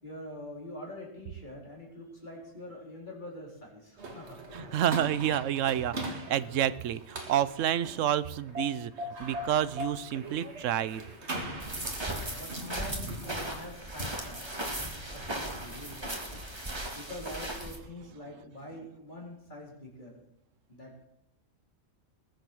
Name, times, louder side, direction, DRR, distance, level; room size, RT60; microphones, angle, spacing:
voice 1, 0.0-4.4 12.0-16.4 16.9-20.2 20.7-20.9, left 1 dB, 35° left, -2 dB, 4.6 m, -45 dB
sound 1, 4.0-17.1, equal, 60° right, 2.1 m, -42 dB
voice 2, 4.5-11.0, right 10 dB, 75° right, 18 dB, 1.0 m, -29 dB
sound 2, 11.6-17.8, right 1 dB, 20° right, 2.1 m, -37 dB
20.5 x 7.8 x 6.3 m, 0.81 s
omnidirectional pair, 1.3 m